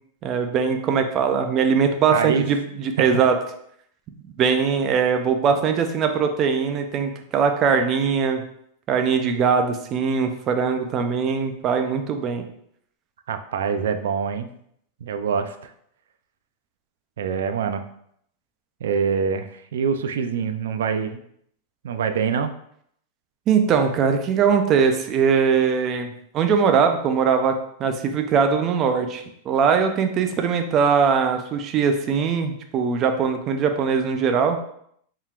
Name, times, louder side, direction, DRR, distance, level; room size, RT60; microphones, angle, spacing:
voice 1, 0.2-3.4 4.4-8.4 8.9-12.4 23.5-27.5 27.8-34.6, right 6 dB, 30° right, 6 dB, 0.5 m, -21 dB
voice 2, 2.1-2.5 3.0-3.1 13.3-14.5 15.0-15.7 17.2-17.8 18.8-21.2 21.8-22.5, right 6 dB, 85° right, 8 dB, 0.4 m, -25 dB
4.2 x 3.7 x 2.4 m, 0.69 s
supercardioid pair, 155°, 0 cm